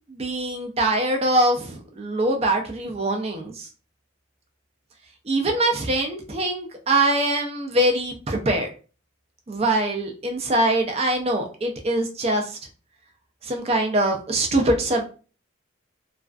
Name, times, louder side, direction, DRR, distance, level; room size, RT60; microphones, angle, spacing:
voice 1, 0.1-3.7 5.2-8.7 9.5-12.6 13.4-15.0, right 1 dB, 30° right, 3 dB, 0.4 m, -23 dB
2.3 x 2.2 x 2.3 m, 0.37 s
head